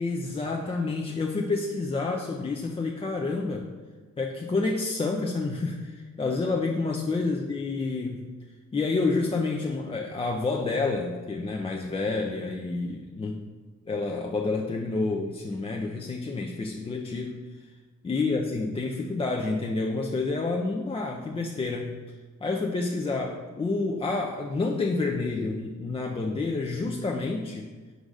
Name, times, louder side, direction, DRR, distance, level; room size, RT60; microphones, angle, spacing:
voice 1, 0.0-3.7 4.2-8.3 8.7-13.4 13.9-17.4 18.0-21.9 22.4-27.7, left 3 dB, 20° left, 0 dB, 0.5 m, -29 dB
5.1 x 3.9 x 4.8 m, 1.4 s
cardioid pair, 90°, 30 cm